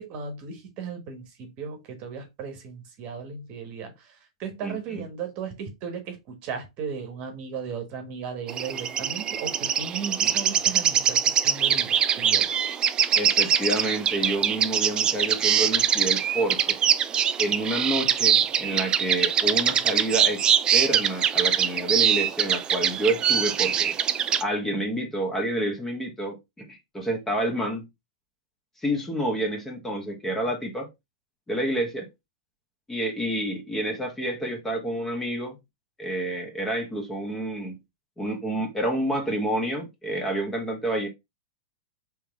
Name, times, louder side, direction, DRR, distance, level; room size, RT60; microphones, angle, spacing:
voice 1, 0.0-12.5, right 6 dB, 40° right, 1.2 m, -36 dB
voice 2, 4.6-5.0 13.1-16.8 17.4-23.9 24.4-27.8 28.8-30.9 31.5-32.1 32.9-35.6 36.0-37.8 38.2-41.1, right 1 dB, 10° left, 1.2 m, -29 dB
sound 1, 8.5-24.4, right 9 dB, 25° right, 0.3 m, -23 dB
3.5 x 3.2 x 3.4 m
hypercardioid pair, 120°, 3 cm